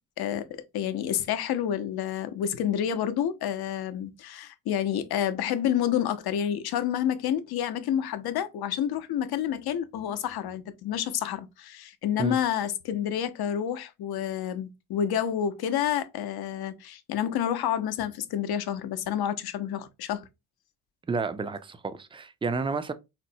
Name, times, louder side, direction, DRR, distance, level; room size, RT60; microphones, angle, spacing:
voice 1, 0.2-20.3, left 10 dB, 65° left, 0.6 m, -29 dB
voice 2, 21.1-22.9, right 4 dB, 15° right, 0.3 m, -30 dB
4.2 x 2.0 x 2.6 m
cardioid pair, 80°, 41 cm